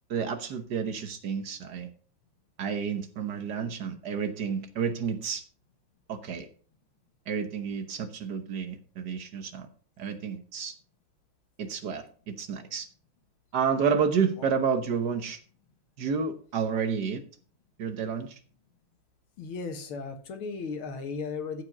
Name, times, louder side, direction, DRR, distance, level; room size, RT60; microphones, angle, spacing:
voice 1, 0.1-1.9 2.6-5.4 6.1-6.5 7.3-9.7 10.0-10.7 11.6-12.9 13.5-15.4 16.0-17.2 17.8-18.4, right 6 dB, 55° right, 9 dB, 1.5 m, -30 dB
voice 2, 19.4-21.6, left 4 dB, 90° left, 7 dB, 2.3 m, -36 dB
14.0 x 5.0 x 5.9 m, 0.42 s
omnidirectional pair, 2.2 m